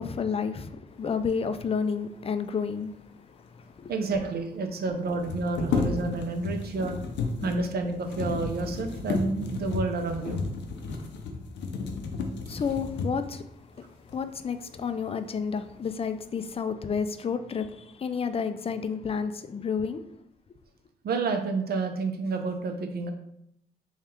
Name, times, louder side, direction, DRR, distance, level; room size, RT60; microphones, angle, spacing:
voice 1, 0.0-2.9 3.8-3.9 12.5-13.4 13.8-13.9 14.1-20.0, left 6 dB, 35° left, 0.4 m, -30 dB
sound 1, 3.6-3.7 3.9-4.0 5.0-13.4 14.1-14.2 14.7-15.3 15.6-16.2, left 4 dB, 85° left, 0.6 m, -33 dB
voice 2, 3.9-7.0 7.4-10.4 12.5-12.6 21.0-23.1, right 3 dB, 60° right, 0.6 m, -30 dB
3.5 x 2.3 x 4.3 m
cardioid pair, 65°, 18 cm